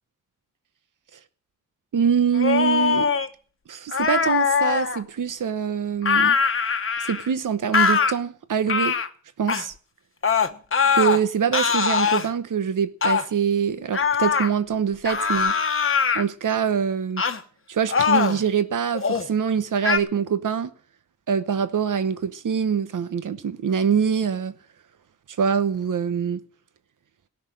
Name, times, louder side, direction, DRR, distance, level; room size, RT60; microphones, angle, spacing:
voice 1, 1.9-3.1 3.7-6.4 7.0-9.0 9.4-9.7 10.9-15.5 16.1-17.2 17.7-20.7 21.3-24.5 25.4-26.4, right 7 dB, 85° right, 1.0 m, -24 dB
sound 1, 2.3-3.3 3.9-5.0 6.0-7.3 7.7-8.1 8.7-9.1 9.5-9.7 10.2-11.2 11.5-12.3 13.0-13.3 13.9-14.5 15.1-16.2 17.2-17.4 17.9-18.4 18.9-19.3 19.8-20.0, left 6 dB, 45° left, 1.1 m, -21 dB
17.5 x 6.4 x 8.6 m
wide cardioid pair, 155°, 31 cm